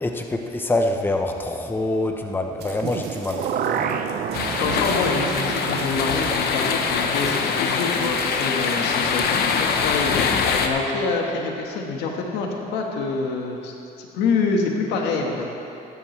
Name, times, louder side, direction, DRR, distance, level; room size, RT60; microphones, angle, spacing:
voice 1, 0.0-3.4, left 2 dB, 10° left, 4 dB, 0.8 m, -25 dB
sound 1, 2.6-10.1, right 5 dB, 75° right, 1.8 m, -44 dB
sound 2, 2.8-8.8 9.1-9.2, right 7 dB, 55° right, 0.7 m, -30 dB
sound 3, 4.3-10.7, left 5 dB, 70° left, 1.0 m, -23 dB
voice 2, 4.6-10.1 10.6-15.5, left 4 dB, 90° left, 1 dB, 1.5 m, -26 dB
15.5 x 11.0 x 3.3 m, 2.7 s
cardioid pair, 110°, 17 cm